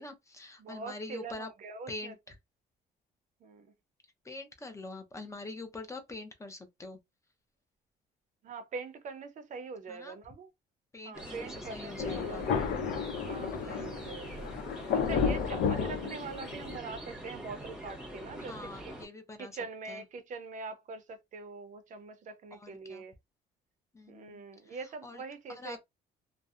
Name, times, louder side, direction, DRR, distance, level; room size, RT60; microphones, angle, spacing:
voice 1, 0.0-1.5 1.9-2.4 4.2-7.0 9.9-10.2 10.9-12.4 13.6-14.1 18.4-19.6 19.9-20.0 22.5-23.1 23.9-25.2 25.5-25.8, left 2 dB, 15° left, 0.5 m, -45 dB
voice 2, 0.6-2.1 3.4-3.7 8.4-10.5 11.1-12.7 13.3-14.5 14.9-18.9 19.4-23.1 24.1-25.8, right 4 dB, 50° right, 0.5 m, -43 dB
sound 1, 11.1-19.0, right 1 dB, 5° right, 1.0 m, -44 dB
Thunder, 12.0-16.8, left 6 dB, 75° left, 0.6 m, -32 dB
2.6 x 2.0 x 2.3 m
cardioid pair, 110°, 17 cm